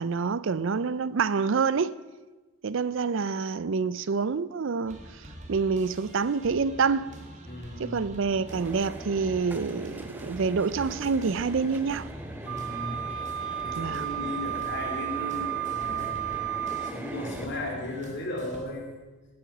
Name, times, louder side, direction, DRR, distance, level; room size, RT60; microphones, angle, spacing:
voice 1, 0.0-2.0 2.6-7.1 7.8-12.1 13.8-14.0, right 5 dB, 60° right, 0.5 m, -27 dB
sound 1, 4.9-18.6, right 1 dB, 35° right, 1.9 m, -46 dB
voice 2, 7.5-8.0 12.4-13.0 13.6-16.2 16.8-18.9, left 1 dB, 55° left, 3.3 m, -36 dB
sound 2, 8.5-17.5, right 1 dB, 10° right, 0.7 m, -42 dB
Wind instrument woodwind instrument, 12.5-17.0, right 11 dB, 90° right, 2.0 m, -33 dB
18.0 x 8.8 x 5.8 m
head